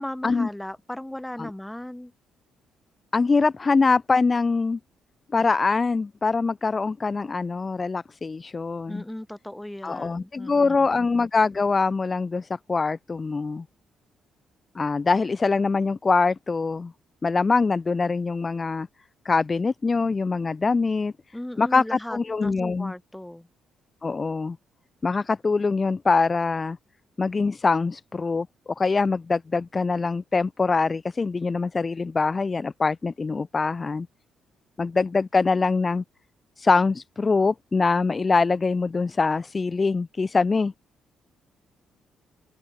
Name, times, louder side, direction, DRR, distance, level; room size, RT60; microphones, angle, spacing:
voice 1, 0.0-2.1 8.9-11.1 21.3-23.5, left 1 dB, 10° left, 3.8 m, -37 dB
voice 2, 3.1-4.8 5.3-9.0 9.8-13.6 14.7-16.9 17.2-18.9 19.2-21.1 21.6-22.9 24.0-24.6 25.0-26.8 27.2-28.5 28.8-34.1 34.8-36.0 36.6-40.7, left 4 dB, 35° left, 1.3 m, -23 dB
open air
supercardioid pair, 55°, 0 cm